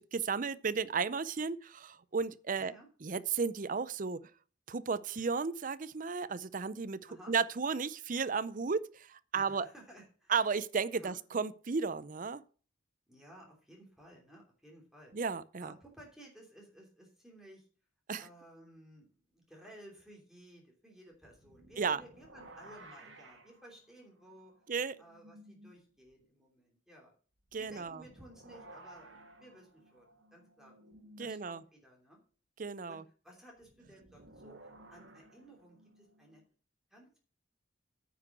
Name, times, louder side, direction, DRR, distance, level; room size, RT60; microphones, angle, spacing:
voice 1, 0.0-2.7 3.0-4.2 4.7-7.0 7.3-9.7 10.3-12.4 15.1-15.7 18.1-18.3 21.8-22.0 24.7-25.0 27.5-28.0 31.2-31.6 32.6-33.0, right 5 dB, 40° right, 0.5 m, -34 dB
voice 2, 2.6-2.9 7.1-7.3 9.3-10.3 10.9-11.2 13.1-15.1 15.6-17.7 18.2-24.5 25.0-27.1 27.5-30.7 31.2-32.2 32.9-36.4 36.9-37.2, right 1 dB, ahead, 3.0 m, -56 dB
sound 1, 21.3-25.8 26.1-26.2 27.5-31.5 33.6-36.5, right 1 dB, 70° right, 2.2 m, -56 dB
9.4 x 6.0 x 7.8 m
head